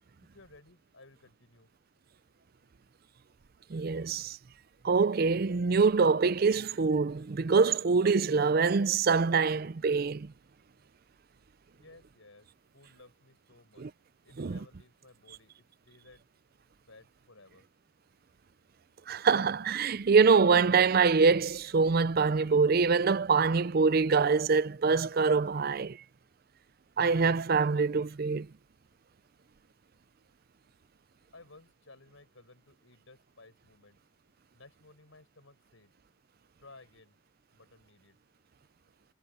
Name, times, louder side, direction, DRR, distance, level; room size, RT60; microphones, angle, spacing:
voice 1, 0.2-1.7 11.7-13.9 14.2-16.3 16.9-17.7 31.3-34.0 34.5-35.9 36.6-37.2 37.5-38.2, left 3 dB, 85° left, 5.2 m, -57 dB
voice 2, 3.7-4.4 4.8-10.3 13.8-13.9 14.4-14.6 19.1-26.0 27.0-28.5, right 5 dB, 50° right, 0.5 m, -25 dB
head